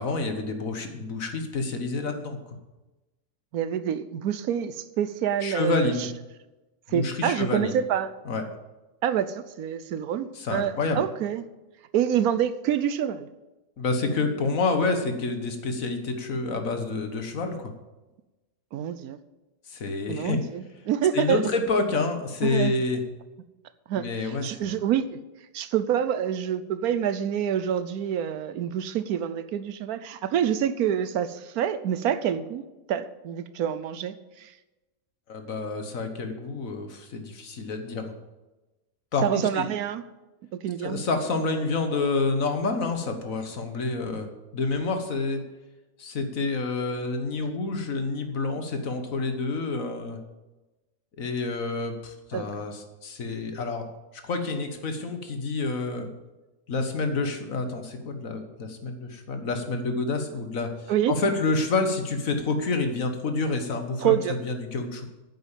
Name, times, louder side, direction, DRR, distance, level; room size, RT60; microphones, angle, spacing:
voice 1, 0.0-2.4 5.4-6.1 6.9-7.8 8.3-8.4 10.3-11.1 13.8-17.7 19.7-20.4 21.1-23.0 23.9-24.7 35.3-38.1 39.1-39.7 40.8-44.3 44.5-45.4 46.0-50.2 51.2-53.9 54.2-56.1 56.7-65.1, left 3 dB, 60° left, 6 dB, 1.7 m, -28 dB
voice 2, 3.5-6.1 6.9-8.1 9.0-11.4 11.9-13.3 18.7-19.2 20.1-21.4 22.4-22.7 23.9-25.0 25.5-34.5 39.2-40.0 40.5-41.0 52.3-52.5 60.9-61.1 64.0-64.4, right 9 dB, 70° right, 13 dB, 1.1 m, -27 dB
9.5 x 8.1 x 7.2 m, 1.1 s
omnidirectional pair, 1.7 m